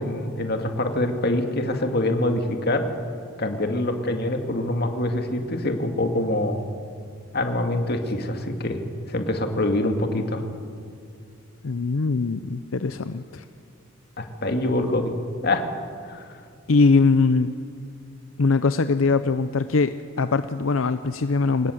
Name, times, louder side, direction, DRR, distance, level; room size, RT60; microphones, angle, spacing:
voice 1, 0.0-2.8 3.4-6.6 7.3-8.8 9.1-10.4 14.2-15.1 15.4-15.7 16.0-16.3, left 1 dB, 50° left, 5 dB, 2.1 m, -25 dB
voice 2, 11.6-13.4 16.7-17.5 18.4-21.7, left 4 dB, 80° left, 11 dB, 0.6 m, -21 dB
23.5 x 19.0 x 7.9 m, 2.3 s
head